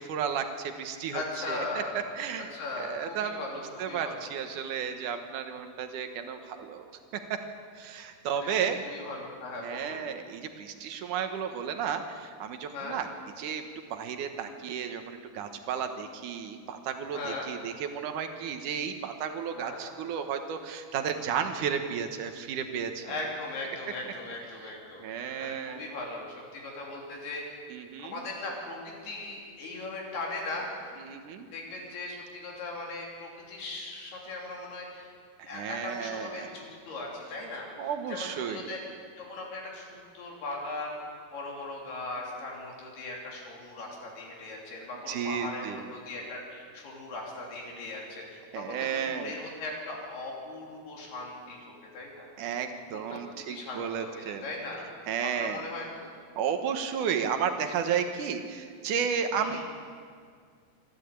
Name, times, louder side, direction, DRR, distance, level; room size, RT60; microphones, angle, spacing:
voice 1, 0.0-1.8 2.2-2.5 2.8-6.9 7.3-7.4 7.7-8.8 9.6-13.1 13.4-23.2 24.6-24.7 25.0-25.9 27.7-28.2 31.0-31.5 35.4-36.5 37.8-38.7 45.1-45.8 48.5-49.3 52.4-54.4 55.1-55.6 56.4-59.6, right 7 dB, 65° right, 6 dB, 2.3 m, -33 dB
voice 2, 1.1-2.0 2.4-4.3 8.4-10.0 12.7-13.0 17.1-17.5 19.6-19.8 23.0-25.0 25.4-27.4 28.0-31.0 31.5-35.1 35.5-38.8 39.2-52.3 52.9-53.2 53.5-54.9 55.4-56.1 59.4-59.6, left 2 dB, 70° left, -2 dB, 5.0 m, -39 dB
26.0 x 12.5 x 8.2 m, 2.1 s
omnidirectional pair, 4.8 m